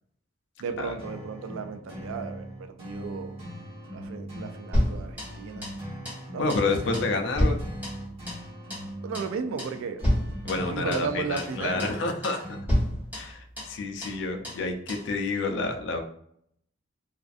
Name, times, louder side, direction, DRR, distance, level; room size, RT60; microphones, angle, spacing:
voice 1, 0.6-3.4 3.9-5.7 6.3-6.7 9.0-10.0 10.7-11.9, right 5 dB, 80° right, 8 dB, 0.3 m, -34 dB
sound 1, 1.0-12.6, equal, 30° right, 1.1 m, -41 dB
sound 2, 4.7-5.8 6.0-6.2 6.5-6.7 6.9-8.4 8.7-8.9 9.1-9.3 9.6-9.8 10.0-11.1 11.4-11.5 11.8-12.0 12.2-12.4 12.7-13.8 14.0-14.2 14.4-14.6 14.9-15.1, equal, 10° right, 1.1 m, -29 dB
voice 2, 6.4-7.6 10.4-12.6 13.1-16.0, left 3 dB, 60° left, 5 dB, 0.4 m, -29 dB
2.4 x 2.4 x 2.4 m, 0.70 s
head